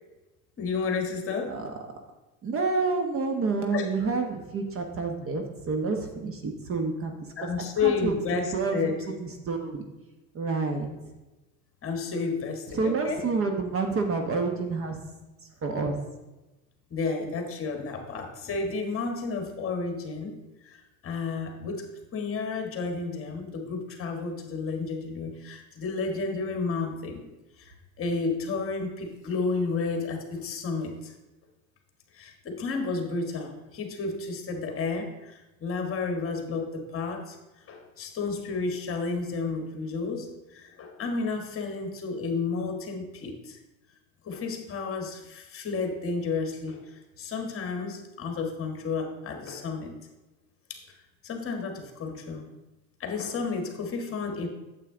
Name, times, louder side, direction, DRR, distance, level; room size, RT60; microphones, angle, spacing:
voice 1, 0.6-1.6 3.7-3.9 7.4-9.0 11.8-13.2 16.9-20.3 20.6-21.9 22.1-27.3 27.6-31.1 32.1-43.6 44.2-50.0 50.7-50.8 51.2-52.5 53.0-54.5, left 4 dB, 30° left, 4 dB, 1.7 m, -31 dB
voice 2, 2.4-7.5 7.8-8.1 8.5-8.8 9.2-9.9 10.3-10.9 12.7-15.0 15.6-16.0, right 4 dB, 30° right, 4 dB, 1.1 m, -28 dB
8.8 x 7.6 x 3.8 m, 1.1 s
supercardioid pair, 115°, 42 cm